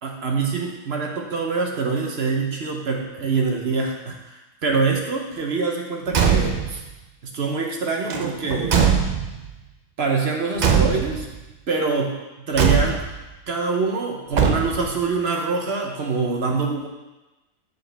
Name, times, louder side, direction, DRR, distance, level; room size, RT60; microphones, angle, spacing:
voice 1, 0.0-6.8 7.2-8.8 10.0-11.3 11.7-13.1 13.5-16.9, right 4 dB, 55° right, 1 dB, 0.9 m, -25 dB
Car / Truck / Slam, 6.1-6.8 8.1-9.5 10.6-11.4 12.5-13.2 14.3-15.0, right 6 dB, 75° right, 0.4 m, -21 dB
6.7 x 6.6 x 3.3 m, 1.1 s
omnidirectional pair, 1.5 m